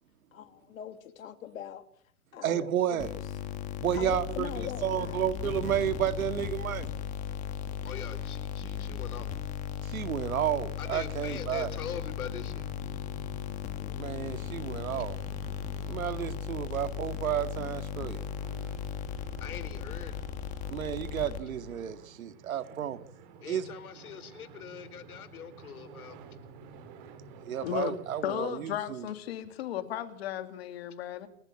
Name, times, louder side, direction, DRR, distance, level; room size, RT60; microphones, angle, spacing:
voice 1, 0.3-1.8 2.3-3.2 4.0-5.4 14.9-15.0, left 9 dB, 65° left, 2.9 m, -42 dB
voice 2, 2.4-3.1 3.8-6.9 9.8-11.7 14.0-15.2 15.9-18.2 20.7-23.0 23.5-23.7 27.4-29.1, right 10 dB, 70° right, 2.2 m, -31 dB
sound 1, 3.0-21.8, left 8 dB, 15° left, 1.7 m, -37 dB
voice 3, 7.8-9.3 10.8-12.6 19.4-20.1 23.4-26.2, left 8 dB, 85° left, 4.4 m, -42 dB
sound 2, 9.7-28.3, right 5 dB, 30° right, 4.3 m, -52 dB
voice 4, 27.6-28.0 28.2-31.3, left 11 dB, 45° left, 2.9 m, -35 dB
29.0 x 15.0 x 8.8 m
hypercardioid pair, 170°, 43 cm